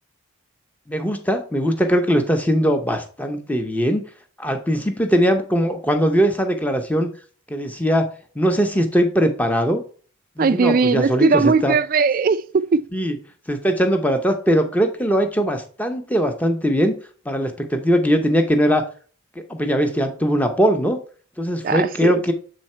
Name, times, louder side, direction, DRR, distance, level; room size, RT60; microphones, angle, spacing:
voice 1, 0.9-4.0 4.4-7.1 7.5-8.1 8.3-9.8 10.4-11.8 12.9-13.2 13.5-17.0 17.3-18.9 19.5-21.0 21.4-22.3, equal, 5° left, 0.7 m, -20 dB
voice 2, 10.4-12.8 21.6-22.2, right 4 dB, 40° right, 0.3 m, -19 dB
7.6 x 3.7 x 4.4 m
head